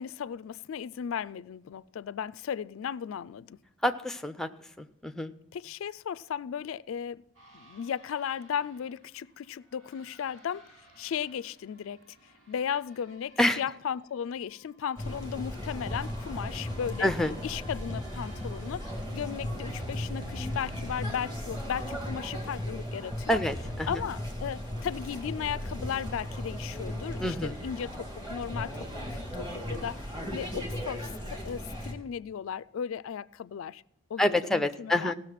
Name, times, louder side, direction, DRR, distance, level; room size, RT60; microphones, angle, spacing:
voice 1, 0.0-3.6 5.5-7.2 7.5-10.7 11.0-12.0 12.5-17.1 17.4-23.4 23.9-28.8 29.1-33.8 34.1-35.1, left 8 dB, 65° left, 0.3 m, -36 dB
voice 2, 3.8-4.5 4.8-5.3 13.4-13.6 17.0-17.3 23.3-24.0 27.2-27.6 34.2-35.1, left 1 dB, ahead, 0.5 m, -27 dB
sound 1, 7.3-21.2, right 1 dB, 65° right, 2.7 m, -55 dB
sound 2, 15.0-31.9, left 1 dB, 20° right, 2.0 m, -36 dB
16.5 x 6.6 x 5.7 m
head